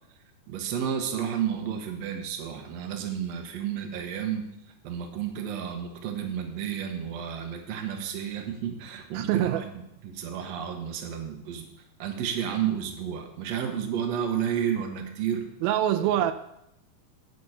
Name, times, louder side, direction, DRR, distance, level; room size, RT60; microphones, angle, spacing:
voice 1, 0.5-4.4 4.8-9.6 10.0-11.7 12.0-15.5, right 8 dB, 60° right, 4 dB, 2.0 m, -31 dB
voice 2, 9.1-9.6 15.6-16.3, right 12 dB, 85° right, 9 dB, 2.4 m, -24 dB
9.3 x 5.6 x 7.9 m, 0.81 s
omnidirectional pair, 4.2 m